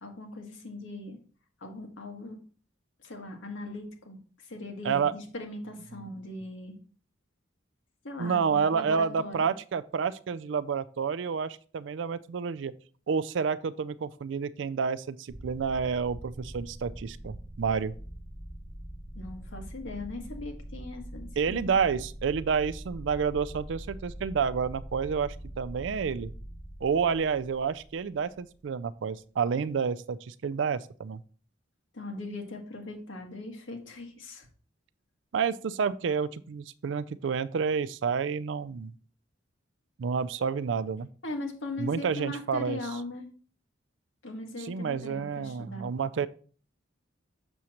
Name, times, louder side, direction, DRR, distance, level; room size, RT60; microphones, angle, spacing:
voice 1, 0.0-1.2 1.6-2.4 3.0-6.8 8.0-9.5 19.1-21.7 27.0-27.2 31.9-34.5 41.2-43.3 44.2-45.9, left 2 dB, 85° left, 2 dB, 1.5 m, -39 dB
voice 2, 4.8-5.2 8.2-12.7 13.1-17.9 21.4-26.3 26.8-31.2 35.3-38.9 40.0-41.1 41.8-42.8 44.6-46.3, right 6 dB, 70° right, 16 dB, 0.4 m, -29 dB
sound 1, 15.3-28.6, right 1 dB, 20° right, 3.4 m, -43 dB
7.0 x 6.3 x 2.9 m, 0.41 s
head